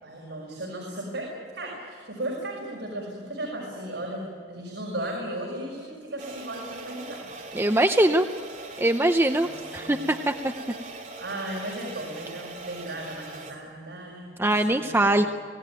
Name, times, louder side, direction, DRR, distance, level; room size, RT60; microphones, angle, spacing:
voice 1, 0.0-7.2 9.3-10.1 11.2-15.2, right 1 dB, 75° right, -2 dB, 5.8 m, -36 dB
sound 1, 6.2-13.5, right 3 dB, 45° right, 3.3 m, -41 dB
voice 2, 7.5-8.3 8.8-10.5 14.4-15.3, right 1 dB, 15° right, 6 dB, 0.7 m, -22 dB
25.0 x 18.0 x 9.3 m, 2.1 s
head